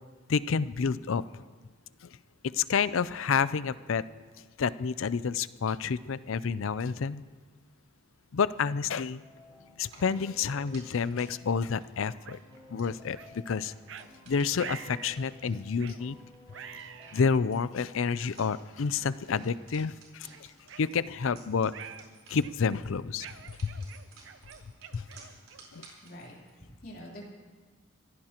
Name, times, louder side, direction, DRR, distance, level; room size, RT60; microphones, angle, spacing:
voice 1, 0.3-1.2 2.5-4.0 4.6-7.2 8.3-9.2 9.8-12.4 12.7-13.7 14.3-16.2 17.1-20.3 20.8-21.7 22.3-23.3 23.6-23.9 24.9-25.0 25.7-25.9, left 5 dB, 70° left, 16 dB, 0.5 m, -29 dB
sound 1, 9.2-17.1, left 2 dB, 15° right, 4.3 m, -56 dB
sound 2, 9.8-26.6, right 3 dB, 75° right, 4.2 m, -57 dB
sound 3, 12.3-12.4 13.2-13.3 13.9-14.1 14.6-15.2 15.8-16.0 16.5-17.4 18.2-18.3 19.0-19.2 19.6-19.8 20.3-21.4 21.7-22.1 22.4-22.8 23.2-25.8, right 8 dB, 60° right, 0.6 m, -46 dB
voice 2, 26.0-27.3, equal, 45° left, -3 dB, 3.4 m, -46 dB
25.5 x 15.5 x 3.0 m, 1.4 s
head